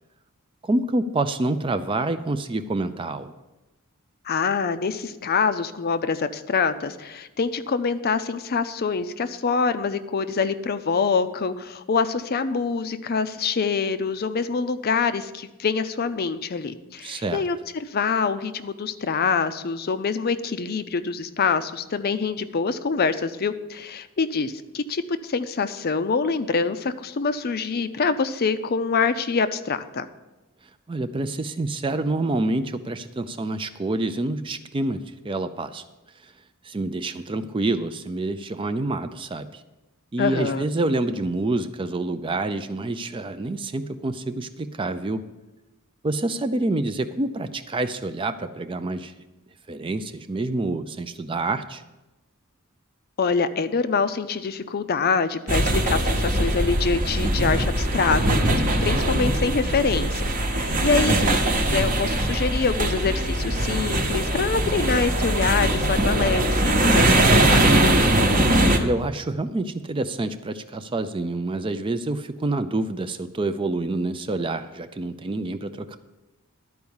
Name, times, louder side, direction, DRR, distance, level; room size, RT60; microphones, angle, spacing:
voice 1, 0.6-3.3 17.0-17.4 30.9-35.8 36.2-36.3 36.6-39.6 40.1-45.2 46.0-49.1 49.7-51.8 61.1-61.4 68.8-76.0, right 2 dB, 25° right, 11 dB, 0.4 m, -27 dB
voice 2, 4.3-30.1 40.2-40.6 53.2-61.3 61.7-68.0, left 5 dB, 45° left, 11 dB, 0.5 m, -25 dB
sound 1, 55.5-68.8, right 1 dB, 40° right, 0.9 m, -21 dB
12.0 x 4.7 x 7.1 m, 1.1 s
head